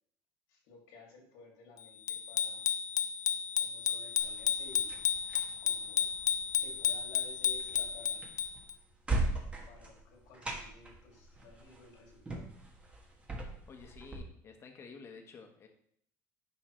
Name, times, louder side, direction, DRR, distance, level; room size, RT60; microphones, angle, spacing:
voice 1, 0.5-2.6 3.5-5.2 5.6-6.1 6.6-8.5 9.6-12.4, left 3 dB, 85° left, 0 dB, 2.5 m, -55 dB
Bicycle bell, 2.1-8.7, left 9 dB, 50° left, 0.5 m, -32 dB
sound 1, 4.2-14.2, right 2 dB, 15° right, 1.4 m, -40 dB
voice 2, 13.7-15.7, left 5 dB, 35° left, 4 dB, 1.3 m, -51 dB
10.0 x 5.3 x 3.2 m, 0.66 s
cardioid pair, 135°, 7 cm